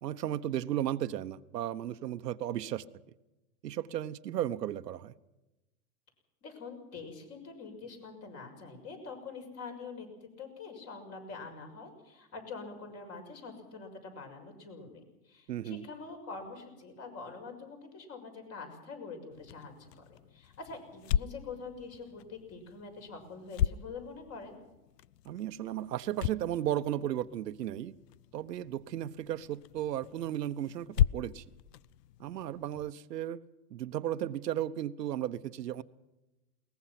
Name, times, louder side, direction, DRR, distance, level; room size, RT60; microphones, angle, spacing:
voice 1, 0.0-2.8 3.6-5.1 15.5-15.8 25.2-28.0 28.3-31.4 32.2-33.4 33.7-35.8, right 11 dB, 85° right, 1.2 m, -35 dB
voice 2, 6.4-24.6, left 4 dB, 30° left, 6.4 m, -45 dB
sound 1, 19.3-32.9, left 10 dB, 85° left, 0.7 m, -37 dB
22.0 x 20.0 x 6.0 m
hypercardioid pair, 135°, 47 cm